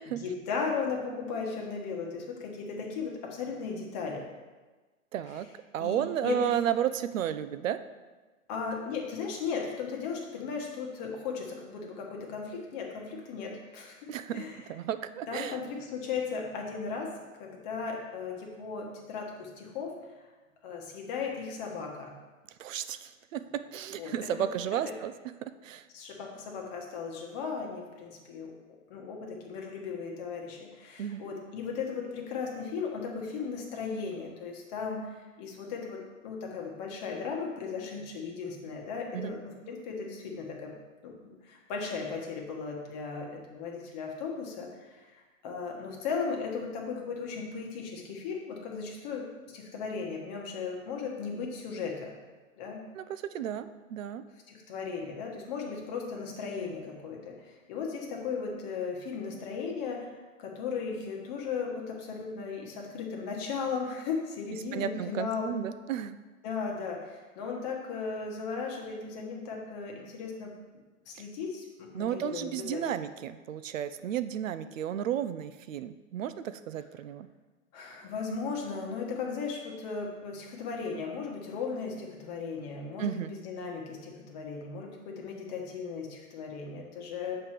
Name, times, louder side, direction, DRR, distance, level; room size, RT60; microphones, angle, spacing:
voice 1, 0.1-4.2 5.8-6.6 8.5-14.1 14.3-14.6 15.3-17.1 17.4-19.9 20.6-22.2 24.0-24.5 25.9-28.5 28.9-49.3 49.5-52.2 52.6-52.8 54.5-65.6 66.4-70.5 71.1-72.8 77.7-87.4, left 5 dB, 30° left, 0 dB, 1.1 m, -36 dB
voice 2, 5.1-5.5 5.7-7.8 14.1-15.6 22.6-23.4 23.7-25.1 25.6-25.9 31.0-31.2 39.1-39.3 52.9-54.2 64.7-66.2 71.9-77.3 83.0-83.3, right 10 dB, 70° right, 12 dB, 0.5 m, -33 dB
6.8 x 3.3 x 5.8 m, 1.3 s
hypercardioid pair, 150°, 41 cm